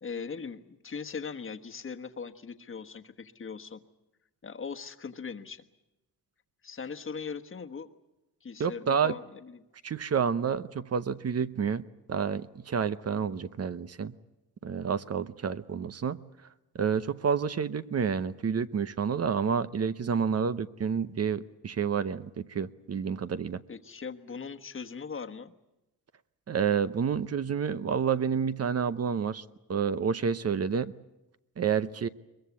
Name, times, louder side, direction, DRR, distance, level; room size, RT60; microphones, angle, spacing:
voice 1, 0.0-3.8 4.4-5.7 6.6-7.9 8.4-9.6 23.7-25.5, left 5 dB, 35° left, 6 dB, 1.4 m, -40 dB
voice 2, 8.6-9.1 9.8-11.8 12.1-14.1 14.6-16.2 16.7-23.6 26.5-29.4 29.7-30.9 31.6-32.1, right 6 dB, 40° right, 13 dB, 0.8 m, -29 dB
22.5 x 22.0 x 8.3 m, 0.95 s
cardioid pair, 115°, 38 cm